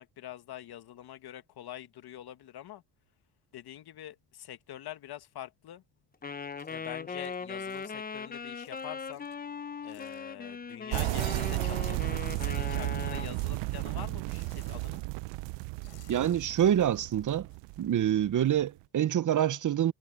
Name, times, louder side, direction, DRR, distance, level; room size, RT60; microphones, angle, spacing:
voice 1, 0.0-2.8 3.5-5.8 6.7-9.3 9.8-15.0, left 12 dB, 60° left, 1.6 m, -45 dB
sound 1, 4.2-5.8 6.1-13.3 13.6-18.3, left 15 dB, 75° left, 5.1 m, -63 dB
Wind instrument woodwind instrument, 6.2-13.3, left 5 dB, 20° left, 0.8 m, -39 dB
sound 2, 10.9-18.6, right 23 dB, 85° right, 0.6 m, -34 dB
voice 2, 16.1-17.5 17.8-19.9, right 10 dB, 45° right, 0.8 m, -26 dB
supercardioid pair, 80°, 42 cm